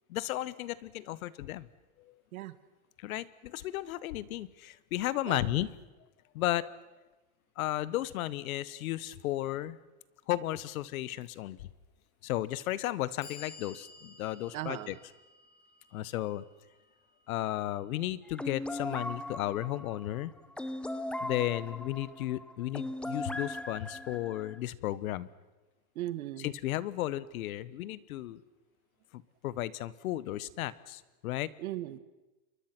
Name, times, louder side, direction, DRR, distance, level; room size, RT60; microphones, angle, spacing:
voice 1, 0.1-1.7 2.1-2.2 3.0-5.7 6.3-6.7 7.6-9.8 10.3-11.6 12.2-15.0 15.9-16.4 17.3-20.3 21.2-25.3 26.4-28.4 29.1-31.5, left 14 dB, 75° left, 18 dB, 1.3 m, -34 dB
Clock, 11.2-11.3 12.3-12.4 12.9-19.0, left 4 dB, 25° left, 6.8 m, -55 dB
voice 2, 14.5-14.9 26.0-26.5 31.6-32.0, right 14 dB, 75° right, 13 dB, 1.7 m, -37 dB
sound 1, 18.4-24.6, left 1 dB, 5° left, 0.7 m, -39 dB
29.0 x 23.0 x 6.1 m, 1.1 s
supercardioid pair, 150°, 43 cm